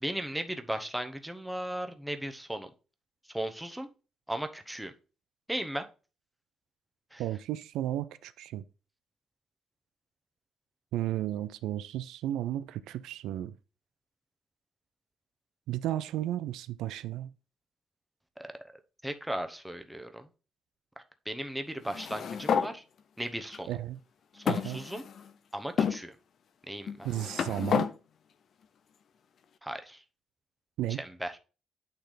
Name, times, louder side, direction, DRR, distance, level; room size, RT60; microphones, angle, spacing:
voice 1, 0.0-2.7 3.3-3.9 4.3-4.9 5.5-5.8 7.1-7.2 18.4-18.5 19.0-20.3 21.3-22.8 23.2-23.7 24.3-25.0 25.5-26.1 26.7-27.1 29.6-30.0 31.0-31.4, right 1 dB, 5° right, 0.8 m, -36 dB
voice 2, 7.2-8.6 10.9-13.5 15.7-17.3 23.7-24.0 24.5-24.8 27.0-27.9 30.8-31.0, right 13 dB, 90° right, 0.4 m, -33 dB
sound 1, 21.9-22.7 23.5-23.6 24.5-25.3 25.8-26.0 26.9-27.9, left 7 dB, 60° left, 0.6 m, -30 dB
8.9 x 3.4 x 3.9 m
cardioid pair, 90°, 0 cm